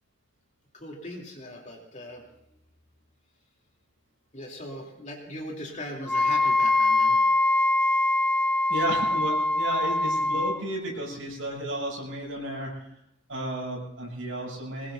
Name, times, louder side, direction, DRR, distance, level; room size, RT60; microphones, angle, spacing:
voice 1, 0.7-2.2 4.3-7.2, left 1 dB, 40° left, 0 dB, 3.2 m, -39 dB
Wind instrument woodwind instrument, 6.1-10.6, left 2 dB, 5° left, 0.6 m, -23 dB
voice 2, 8.7-12.9 13.3-14.9, equal, 75° right, -3 dB, 7.6 m, -33 dB
23.0 x 20.0 x 2.7 m, 0.75 s
head